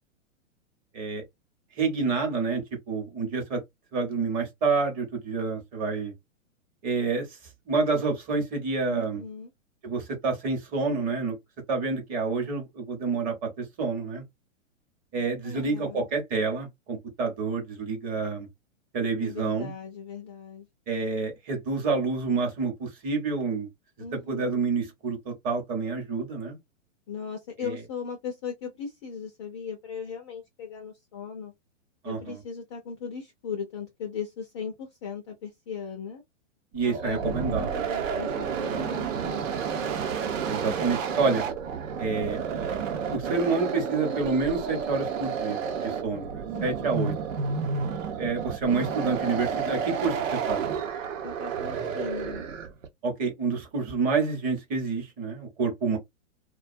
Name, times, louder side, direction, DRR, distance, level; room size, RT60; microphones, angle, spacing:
voice 1, 1.7-3.6 3.9-6.1 6.8-7.4 7.7-9.2 9.8-11.4 11.7-14.2 15.1-18.5 18.9-19.7 20.9-23.7 24.1-26.6 27.6-27.8 32.0-32.4 36.7-37.8 40.4-41.4 42.0-42.4 43.1-47.1 48.2-50.7 53.0-56.0, right 4 dB, 20° right, 0.8 m, -28 dB
voice 2, 8.9-9.5 15.4-16.1 19.2-20.6 24.0-24.6 27.1-31.5 32.0-36.2 36.8-39.5 46.5-47.1 51.2-52.4, left 6 dB, 25° left, 0.4 m, -38 dB
sound 1, 36.8-52.9, right 6 dB, 80° right, 0.9 m, -31 dB
2.4 x 2.3 x 2.5 m
hypercardioid pair, 150°, 39 cm